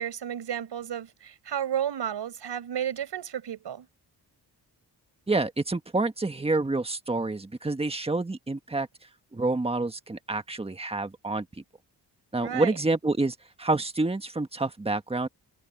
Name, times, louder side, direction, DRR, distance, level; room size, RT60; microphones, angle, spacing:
voice 1, 0.0-3.9 12.4-12.7, right 9 dB, 90° right, 5.0 m, -32 dB
voice 2, 5.3-8.9 9.3-11.4 12.3-15.3, right 2 dB, 15° right, 1.5 m, -28 dB
wide cardioid pair, 130°, 40 cm